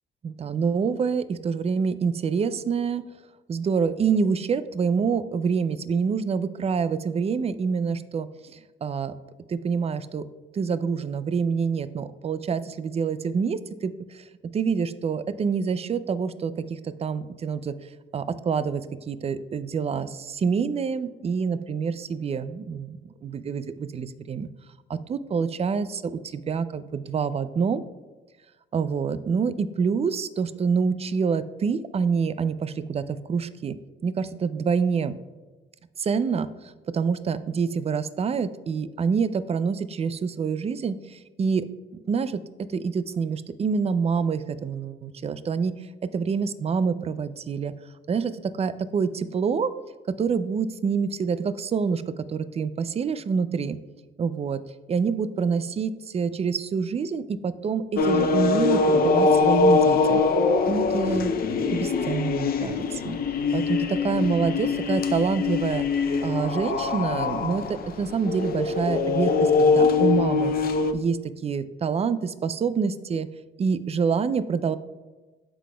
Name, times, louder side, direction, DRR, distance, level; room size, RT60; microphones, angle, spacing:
voice 1, 0.2-3.0 3.5-9.1 9.5-10.2 10.5-14.3 14.5-24.5 24.9-27.8 28.7-33.8 34.0-35.2 36.0-41.7 42.1-45.7 46.0-47.7 48.1-49.7 50.1-53.8 54.2-54.6 54.9-60.2 60.7-61.3 61.7-63.2 63.5-65.9 66.2-70.5 70.9-73.3 73.6-74.8, right 5 dB, 30° right, 14 dB, 0.4 m, -27 dB
sound 1, 57.9-70.9, left 4 dB, 50° left, 0.5 m, -23 dB
12.0 x 4.1 x 2.2 m, 1.2 s
cardioid pair, 90°, 20 cm